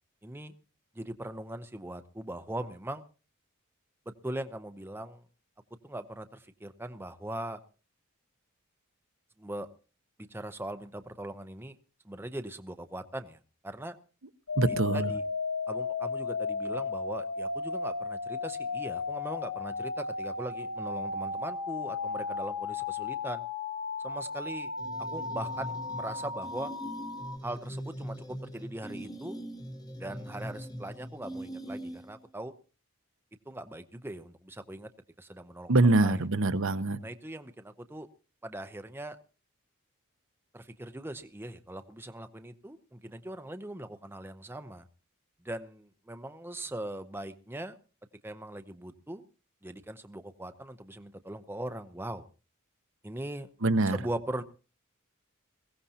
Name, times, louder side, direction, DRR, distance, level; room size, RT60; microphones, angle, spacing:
voice 1, 0.2-0.5 0.9-3.0 4.1-5.2 5.8-7.6 9.4-9.7 10.2-11.7 12.0-13.9 14.7-15.2 15.7-23.4 24.0-24.7 25.1-26.7 27.4-29.4 30.0-32.5 33.5-34.9 35.2-35.7 36.0-36.2 37.0-38.1 38.4-39.2 40.5-44.9 45.4-47.8 48.2-49.2 49.6-52.3 53.0-53.5 53.9-54.4, right 1 dB, 10° right, 8 dB, 0.6 m, -40 dB
sound 1, 14.5-27.4, left 4 dB, 85° left, 1.2 m, -35 dB
voice 2, 14.6-15.1 35.7-37.0 53.6-54.0, right 2 dB, 65° right, 10 dB, 0.9 m, -24 dB
sound 2, 24.8-32.3, equal, 20° left, 1.1 m, -42 dB
21.5 x 16.0 x 2.8 m, 0.35 s
head